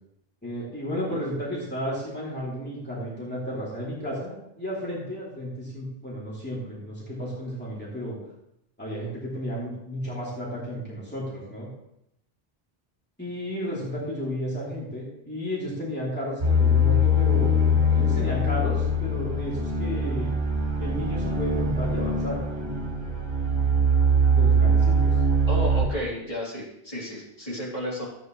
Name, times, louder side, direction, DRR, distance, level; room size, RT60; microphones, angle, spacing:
voice 1, 0.4-8.2 8.8-11.7 13.2-20.3 20.8-22.4 24.3-25.1, equal, 10° left, -7 dB, 2.8 m, -33 dB
sound 1, 16.4-25.9, equal, 45° right, 1.5 m, -22 dB
voice 2, 25.5-28.1, left 1 dB, 35° left, -7 dB, 3.2 m, -32 dB
13.0 x 8.2 x 3.1 m, 0.80 s
omnidirectional pair, 1.0 m